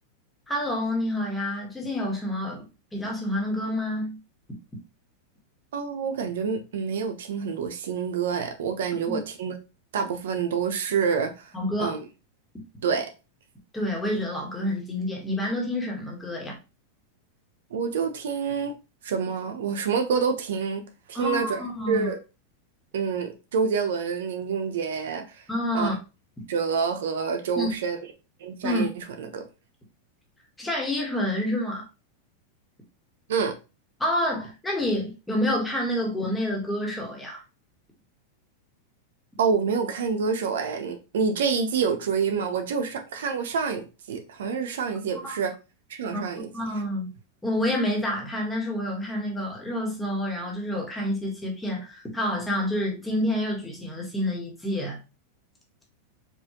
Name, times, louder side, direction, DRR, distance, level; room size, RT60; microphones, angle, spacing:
voice 1, 0.5-2.6 2.9-4.2 9.1-9.2 11.5-12.0 13.7-16.6 21.1-22.1 25.5-26.0 27.6-27.7 28.6-28.9 30.6-31.8 34.0-37.4 45.2-45.3 46.1-46.2 46.5-47.1 47.4-55.0, left 1 dB, 10° left, 1.4 m, -28 dB
voice 2, 5.7-9.5 9.9-11.5 11.8-12.0 12.8-13.1 17.7-18.8 19.0-20.8 21.1-22.2 22.9-25.4 25.7-25.9 26.5-28.0 28.4-29.5 33.3-33.5 39.4-45.5 45.9-46.5, right 6 dB, 80° right, 0.8 m, -27 dB
4.6 x 2.6 x 2.9 m
supercardioid pair, 135°, 0 cm